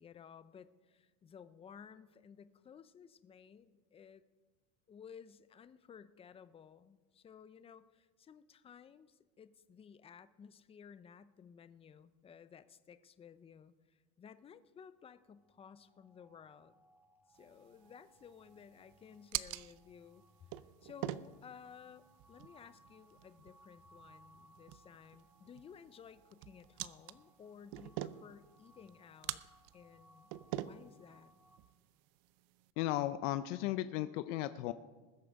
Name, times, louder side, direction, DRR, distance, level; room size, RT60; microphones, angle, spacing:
voice 1, 0.0-4.2 4.9-16.7 17.3-29.4 29.7-30.3 30.6-31.3, left 7 dB, 15° left, 14 dB, 0.4 m, -56 dB
sound 1, 14.9-31.6, right 1 dB, 5° right, 1.6 m, -67 dB
sound 2, 17.4-32.7, right 15 dB, 60° right, 0.6 m, -47 dB
voice 2, 32.8-34.7, left 14 dB, 80° left, 12 dB, 0.6 m, -35 dB
20.5 x 7.8 x 5.2 m, 1.3 s
supercardioid pair, 140°, 36 cm